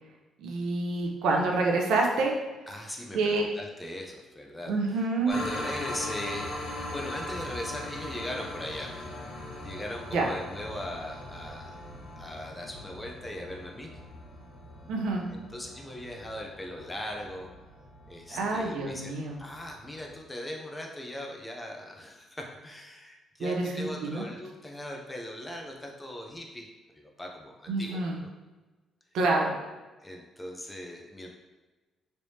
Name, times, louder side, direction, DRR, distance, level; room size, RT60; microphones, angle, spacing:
voice 1, 0.4-2.3 3.1-3.5 4.7-5.4 10.1-10.3 14.9-15.2 18.3-19.4 23.4-24.2 27.7-28.2 29.1-29.5, right 3 dB, 90° right, 0 dB, 0.6 m, -27 dB
voice 2, 2.7-4.7 5.2-9.0 9.6-11.8 12.2-14.0 15.3-17.5 18.1-26.7 26.9-28.3 30.0-31.3, left 1 dB, 10° left, 0 dB, 0.4 m, -39 dB
sound 1, 5.3-20.2, left 1 dB, 70° left, 1.1 m, -41 dB
3.2 x 3.1 x 2.7 m, 1.2 s
cardioid pair, 175°, 0 cm